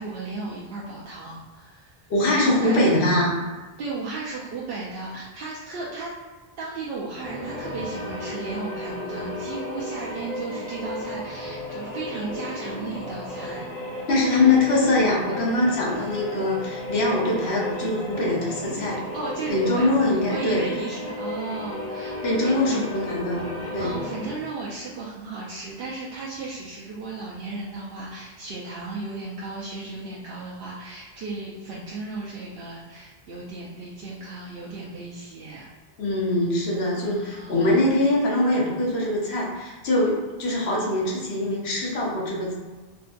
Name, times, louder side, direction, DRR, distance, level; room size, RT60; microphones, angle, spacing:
voice 1, 0.0-2.8 3.8-6.1 6.6-13.7 19.1-19.9 20.3-22.8 23.8-35.7 36.9-37.7, right 3 dB, 70° right, -6 dB, 0.8 m, -35 dB
voice 2, 2.1-3.4 14.1-19.0 19.5-20.7 22.2-23.4 23.7-23.9 36.0-42.5, left 2 dB, 75° left, -3 dB, 1.1 m, -23 dB
sound 1, 7.1-24.6, left 1 dB, 40° left, 0.6 m, -34 dB
3.7 x 2.3 x 2.5 m, 1.3 s
omnidirectional pair, 1.1 m